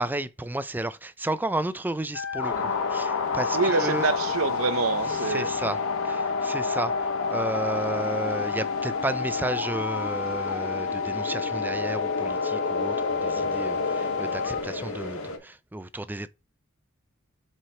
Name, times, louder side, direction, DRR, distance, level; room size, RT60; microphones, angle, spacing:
voice 1, 0.0-4.1 5.2-5.8 6.0-6.9 7.3-16.3, right 2 dB, 10° right, 0.4 m, -32 dB
sound 1, 2.1-14.6, left 6 dB, 65° left, 0.6 m, -31 dB
sound 2, 2.4-15.4, left 3 dB, 85° left, 1.4 m, -31 dB
voice 2, 3.5-5.5, right 4 dB, 90° right, 0.7 m, -26 dB
7.8 x 4.4 x 2.9 m
head